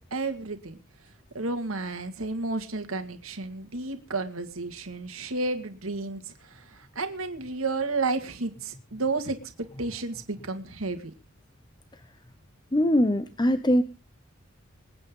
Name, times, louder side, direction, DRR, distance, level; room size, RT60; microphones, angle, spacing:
voice 1, 0.1-0.8 1.3-9.4 9.8-11.1, right 3 dB, 85° right, 6 dB, 1.9 m, -32 dB
voice 2, 12.7-13.8, equal, 20° left, 10 dB, 0.7 m, -22 dB
26.0 x 8.8 x 3.7 m, 0.33 s
head